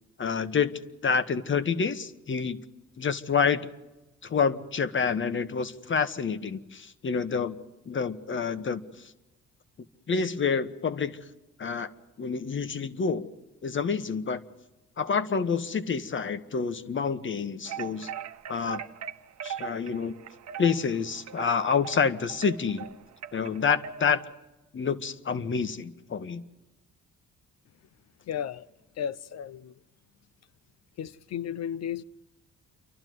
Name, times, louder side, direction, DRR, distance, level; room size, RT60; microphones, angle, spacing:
voice 1, 0.2-0.7 1.0-2.6 3.0-3.6 4.2-7.6 7.9-8.8 10.1-11.2 11.6-11.9 12.2-13.3 13.6-14.4 15.0-18.1 18.5-18.8 19.4-20.2 20.6-22.9 23.3-24.2 24.7-26.4, left 6 dB, 40° left, 1.4 m, -28 dB
sound 1, 17.7-24.3, right 8 dB, 60° right, 1.1 m, -40 dB
voice 2, 28.3-28.7 29.0-29.7 31.0-32.0, left 9 dB, 60° left, 0.7 m, -34 dB
29.0 x 12.0 x 9.4 m
cardioid pair, 90°, 30 cm